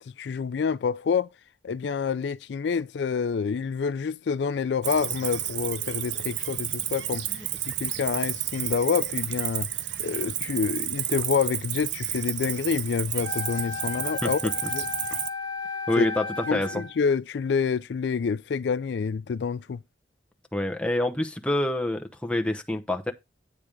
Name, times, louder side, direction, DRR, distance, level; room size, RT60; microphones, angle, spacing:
voice 1, 0.2-1.3 1.6-9.7 10.0-14.4 14.7-14.8 16.0-16.1 16.5-19.8, left 6 dB, 70° left, 0.4 m, -27 dB
Cricket, 4.8-15.3, right 12 dB, 75° right, 0.6 m, -31 dB
Wind instrument woodwind instrument, 13.2-17.0, left 4 dB, 25° left, 1.5 m, -34 dB
voice 2, 14.2-14.7 15.1-15.2 15.9-16.8 20.5-23.1, left 1 dB, 5° left, 0.8 m, -27 dB
8.7 x 3.4 x 6.4 m
head